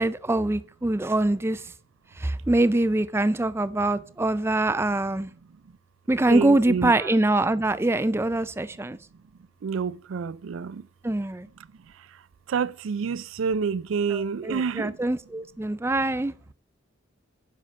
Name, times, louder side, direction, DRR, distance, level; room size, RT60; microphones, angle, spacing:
voice 1, 0.0-1.7 2.2-5.3 6.1-9.0 11.0-11.5 14.1-16.3, right 2 dB, 10° right, 0.4 m, -24 dB
voice 2, 6.3-7.1 9.6-10.8 12.5-14.9, right 6 dB, 80° right, 0.4 m, -28 dB
10.0 x 5.6 x 6.4 m
head